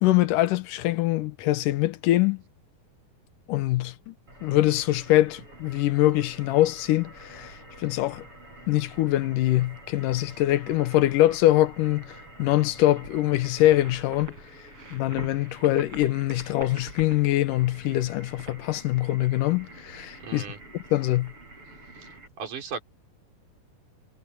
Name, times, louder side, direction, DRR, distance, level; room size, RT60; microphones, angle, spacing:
voice 1, 0.0-2.4 3.5-4.1 4.4-8.3 8.7-14.3 14.9-20.4 20.9-21.3, left 15 dB, 90° left, 2.5 m, -23 dB
sound 1, 4.3-22.3, right 2 dB, 40° right, 7.0 m, -46 dB
voice 2, 20.2-20.6 22.0-22.1 22.4-22.8, right 6 dB, 75° right, 5.7 m, -36 dB
omnidirectional pair, 3.7 m